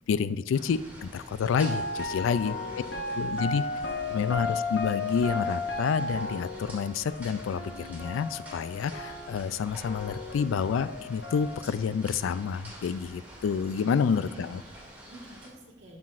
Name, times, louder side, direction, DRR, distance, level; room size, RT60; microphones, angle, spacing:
voice 1, 0.1-2.6 3.2-3.6 4.1-14.6, left 6 dB, 90° left, 15 dB, 0.3 m, -29 dB
sound 1, 0.5-15.5, equal, 10° right, 1.7 m, -47 dB
sound 2, 1.5-9.6 9.8-11.6, left 3 dB, 70° left, 0.8 m, -35 dB
voice 2, 2.0-3.4 3.7-4.0 13.7-13.8 14.2-16.0, right 1 dB, 75° right, 0 dB, 1.6 m, -49 dB
11.5 x 6.0 x 2.5 m, 1.0 s
head